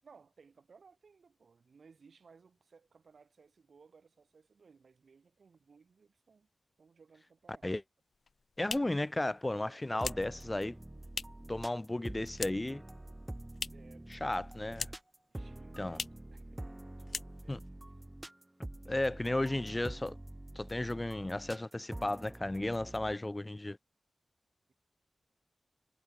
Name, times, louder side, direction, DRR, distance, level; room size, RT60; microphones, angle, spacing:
voice 1, 0.0-6.5 6.8-7.7 9.7-10.3 13.7-14.2 15.3-17.8, right 5 dB, 70° right, 2.7 m, -61 dB
sound 1, 8.1-11.6 11.8-12.8 13.1-14.0 14.3-15.2 15.5-15.6 15.9-16.3 16.7-16.8 17.0-17.7, left 4 dB, 65° left, 1.1 m, -42 dB
voice 2, 8.6-10.8 11.5-12.8 14.1-14.9 15.8-16.0 17.5-17.6 18.9-20.2 20.6-23.8, left 1 dB, 20° left, 0.6 m, -34 dB
sound 2, 10.0-23.1, right 1 dB, 20° right, 1.1 m, -46 dB
cardioid pair, 60°, 0 cm